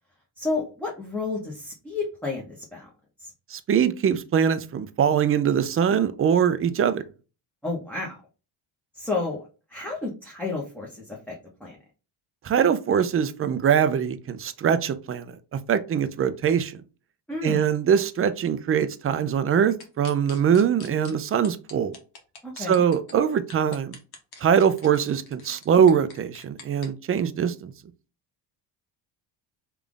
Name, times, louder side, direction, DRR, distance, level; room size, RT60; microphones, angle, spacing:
voice 1, 0.4-2.9 3.2-3.3 7.6-8.2 8.9-9.4 9.7-11.3 11.6-11.8 17.3-17.6 22.4-22.8, left 3 dB, 5° left, 0.9 m, -31 dB
voice 2, 3.5-7.0 12.4-16.8 17.4-21.9 22.6-24.0 24.4-27.7, right 8 dB, 30° right, 0.4 m, -22 dB
sound 1, 19.8-21.1 21.4-23.1 23.5-26.9, left 4 dB, 50° left, 1.1 m, -44 dB
3.4 x 2.4 x 3.7 m
cardioid pair, 100°, 48 cm